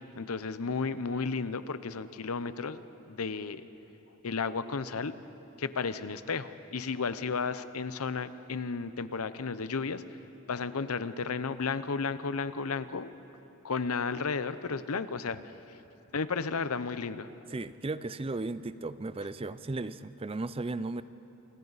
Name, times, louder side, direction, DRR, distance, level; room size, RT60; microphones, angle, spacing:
voice 1, 0.0-2.8 3.1-3.6 4.2-5.1 5.6-10.0 10.5-13.1 13.6-15.4 16.1-17.3, left 4 dB, 90° left, 13 dB, 0.7 m, -33 dB
voice 2, 17.5-21.0, right 2 dB, 25° right, 15 dB, 0.5 m, -35 dB
28.0 x 24.5 x 4.1 m, 3.0 s
head